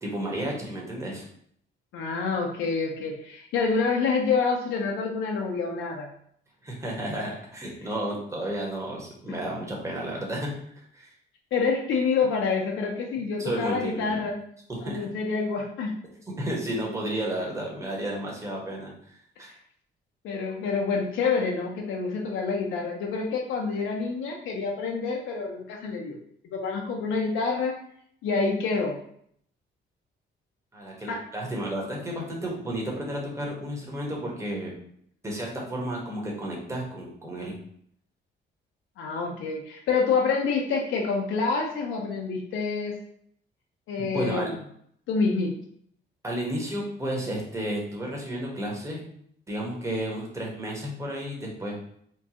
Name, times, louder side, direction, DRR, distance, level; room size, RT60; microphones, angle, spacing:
voice 1, 0.0-1.2 6.6-10.5 10.9-11.1 13.4-14.2 14.8-15.1 16.3-18.9 19.4-19.5 30.7-34.7 35.2-37.5 44.0-44.5 46.2-49.0 49.5-51.8, right 1 dB, 15° right, -3 dB, 1.2 m, -32 dB
voice 2, 1.9-6.1 9.3-9.4 11.5-14.4 14.8-15.9 19.4-19.5 20.2-26.2 26.4-27.8 28.2-29.0 31.1-31.2 39.0-43.0 43.9-44.5 45.1-45.5, left 4 dB, 80° left, 0 dB, 0.6 m, -27 dB
4.4 x 2.3 x 2.8 m, 0.67 s
cardioid pair, 90°, 20 cm